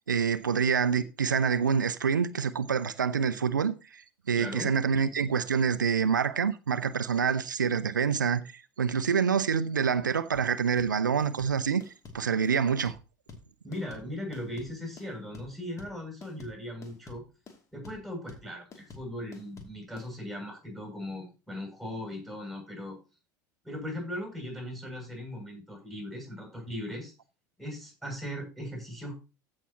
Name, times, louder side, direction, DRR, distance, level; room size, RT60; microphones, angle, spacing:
voice 1, 0.1-4.0 4.3-8.4 8.8-11.8 12.1-13.0, right 6 dB, 80° right, 0.7 m, -26 dB
voice 2, 4.3-4.7 13.6-17.2 17.7-23.0 23.6-27.1 27.6-29.1, left 1 dB, ahead, 6.8 m, -38 dB
sound 1, 10.3-20.1, left 4 dB, 30° left, 2.7 m, -49 dB
15.0 x 7.1 x 2.9 m
figure-of-eight pair, 75°, 10 cm